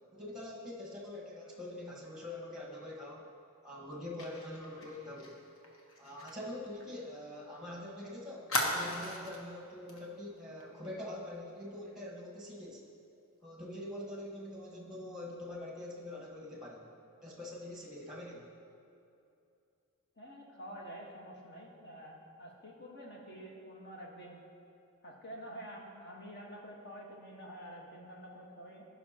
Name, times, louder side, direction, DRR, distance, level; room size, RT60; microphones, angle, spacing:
voice 1, 0.1-3.3 3.6-5.4 6.0-12.8 13.4-16.9 17.2-18.5, left 1 dB, 5° right, -3 dB, 1.3 m, -44 dB
Fire, 4.2-7.6 7.9-8.0 8.5-9.5 9.9-10.1 10.4-10.6, left 1 dB, 65° left, 1.2 m, -38 dB
voice 2, 20.2-24.4 25.0-28.8, equal, 50° left, -1 dB, 1.4 m, -48 dB
16.0 x 5.7 x 2.9 m, 2.6 s
head